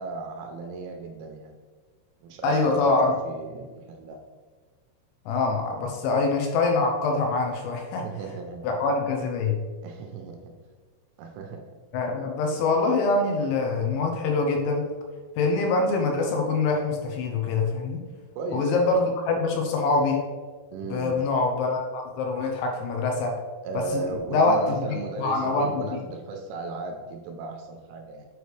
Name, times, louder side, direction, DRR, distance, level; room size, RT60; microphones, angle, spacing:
voice 1, 0.0-1.5 2.2-4.2 8.0-8.8 9.8-10.5 11.2-11.7 18.4-18.9 20.7-21.2 23.6-28.3, right 3 dB, 80° right, 3 dB, 2.8 m, -35 dB
voice 2, 2.4-3.1 5.3-8.1 8.6-9.6 11.9-14.8 15.4-18.0 18.5-20.2 20.9-23.3 23.7-24.0 24.3-26.0, left 3 dB, 80° left, 1 dB, 2.9 m, -24 dB
8.1 x 4.8 x 3.2 m, 1.4 s
omnidirectional pair, 5.8 m